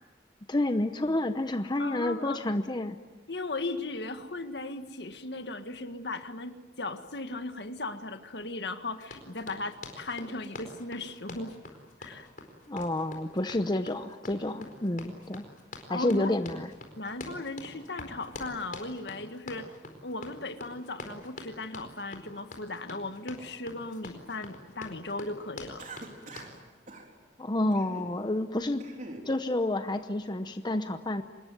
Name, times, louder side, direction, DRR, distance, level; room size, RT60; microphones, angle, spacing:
voice 1, 0.5-3.0 12.7-15.5 15.9-16.7 27.4-28.8 29.3-31.2, left 1 dB, 25° left, 8 dB, 0.8 m, -29 dB
voice 2, 1.8-2.4 3.3-11.6 12.0-12.3 15.9-16.3 17.0-19.7 20.0-25.9, left 2 dB, 65° left, 8 dB, 1.7 m, -37 dB
Run, 9.0-26.6, left 2 dB, 50° left, 4.5 m, -45 dB
Cough, 25.8-26.6 26.9-27.1 27.7-28.1 28.6-29.3, right 2 dB, 45° right, 3.9 m, -44 dB
26.5 x 21.0 x 9.4 m, 1.3 s
head